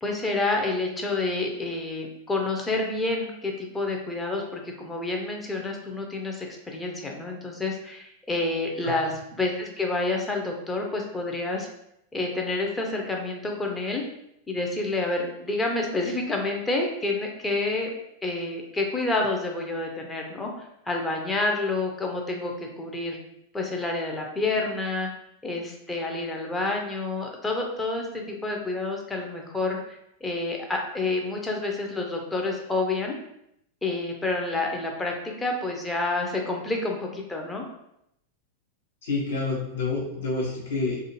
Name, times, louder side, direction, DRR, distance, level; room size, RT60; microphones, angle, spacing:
voice 1, 0.0-9.1 9.4-11.7 12.1-14.0 14.5-17.9 18.2-23.2 23.5-25.1 25.4-33.2 33.8-37.6, left 2 dB, 10° left, 0 dB, 0.5 m, -28 dB
voice 2, 39.0-41.0, left 3 dB, 65° left, -5 dB, 0.8 m, -28 dB
2.5 x 2.4 x 2.9 m, 0.78 s
figure-of-eight pair, 90°, 0 cm